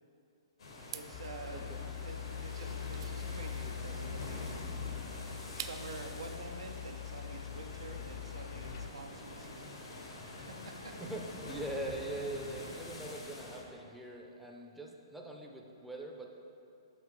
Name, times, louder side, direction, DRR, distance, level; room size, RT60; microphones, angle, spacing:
sound 1, 0.6-13.6, left 2 dB, 80° left, 1.4 m, -46 dB
sound 2, 0.8-6.1, right 9 dB, 55° right, 0.4 m, -49 dB
voice 1, 0.9-4.5 5.2-10.9, right 3 dB, 85° right, 4 dB, 0.7 m, -48 dB
sound 3, 1.1-8.9, left 8 dB, 50° left, 0.4 m, -43 dB
voice 2, 1.5-1.9 11.0-16.3, right 1 dB, ahead, 0 dB, 0.5 m, -42 dB
5.9 x 5.6 x 4.6 m, 2.6 s
hypercardioid pair, 135°, 3 cm